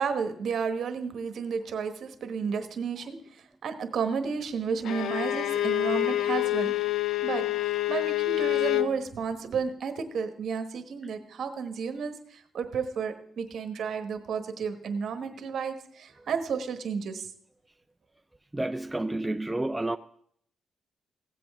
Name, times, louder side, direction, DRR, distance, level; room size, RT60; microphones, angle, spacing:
voice 1, 0.0-6.8 7.2-17.3, right 6 dB, 65° right, 1.1 m, -32 dB
Bowed string instrument, 4.8-9.0, left 14 dB, 80° left, 0.5 m, -27 dB
voice 2, 18.5-20.0, right 2 dB, 10° right, 0.3 m, -30 dB
16.5 x 7.7 x 3.4 m
cardioid pair, 95°, 0 cm